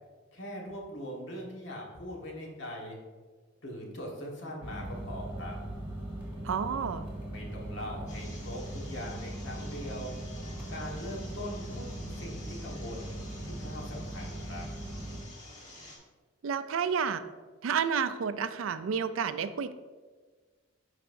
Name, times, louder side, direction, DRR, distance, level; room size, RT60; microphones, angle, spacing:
voice 1, 0.3-3.0 3.6-5.6 7.3-10.1 10.7-14.7, equal, 65° left, -1 dB, 1.5 m, -41 dB
sound 1, 4.6-15.2, right 1 dB, 10° right, 1.7 m, -40 dB
voice 2, 6.4-7.1 16.4-17.2 17.6-19.7, right 6 dB, 85° right, 12 dB, 0.4 m, -30 dB
sound 2, 8.1-16.0, left 2 dB, 40° left, 1.4 m, -50 dB
10.0 x 4.1 x 2.6 m, 1.4 s
head